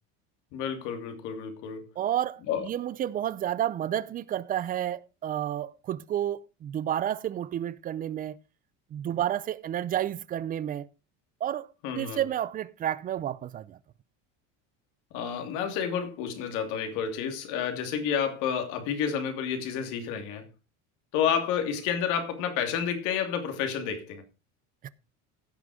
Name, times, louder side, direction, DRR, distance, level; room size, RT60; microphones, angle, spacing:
voice 1, 0.5-1.9 2.5-2.7 11.8-12.2 15.1-20.5 21.1-24.2, left 7 dB, 60° left, 2.9 m, -30 dB
voice 2, 2.0-8.4 8.9-10.9 11.4-13.8 24.8-24.9, right 11 dB, 25° right, 0.5 m, -31 dB
16.0 x 6.1 x 5.0 m
cardioid pair, 160°, 34 cm